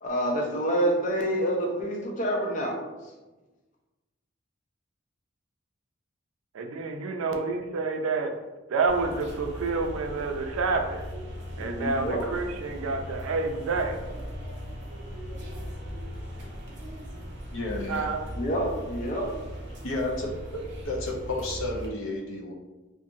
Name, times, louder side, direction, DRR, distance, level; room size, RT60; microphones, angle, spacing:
voice 1, 0.0-2.8 11.6-12.2 18.3-19.3, equal, 40° left, 0 dB, 0.5 m, -27 dB
voice 2, 6.5-8.4 8.7-11.0 11.6-14.0 17.9-18.3, right 3 dB, 85° right, 4 dB, 0.4 m, -28 dB
sound 1, 8.9-21.9, equal, 55° right, 0.7 m, -39 dB
voice 3, 17.5-18.1 19.8-22.5, left 2 dB, 80° left, -1 dB, 0.6 m, -32 dB
2.7 x 2.5 x 2.5 m, 1.1 s
head